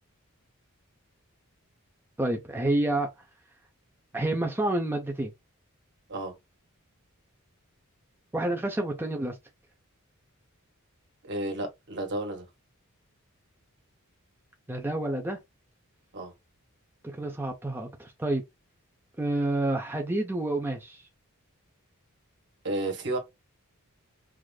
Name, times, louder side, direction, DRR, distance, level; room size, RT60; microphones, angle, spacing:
voice 1, 2.2-3.1 4.1-5.3 8.3-9.4 14.7-15.4 17.1-18.4 19.2-21.1, right 1 dB, 10° right, 0.5 m, -29 dB
voice 2, 11.2-12.5 16.1-16.3 22.6-23.2, right 1 dB, 55° right, 1.4 m, -32 dB
4.8 x 2.5 x 2.3 m
head